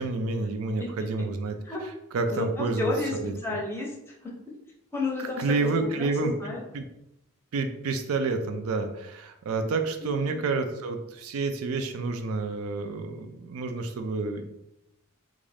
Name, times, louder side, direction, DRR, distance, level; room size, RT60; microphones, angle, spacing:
voice 1, 0.0-1.5 2.1-3.3 5.4-6.3 6.7-6.8 7.5-14.4, right 3 dB, 80° right, 7 dB, 0.4 m, -29 dB
voice 2, 2.3-3.1 3.4-3.9 4.2-4.3 4.9-5.7 6.0-6.6 10.0-10.4, left 2 dB, 10° left, -2 dB, 0.5 m, -31 dB
2.5 x 2.3 x 3.2 m, 0.85 s
head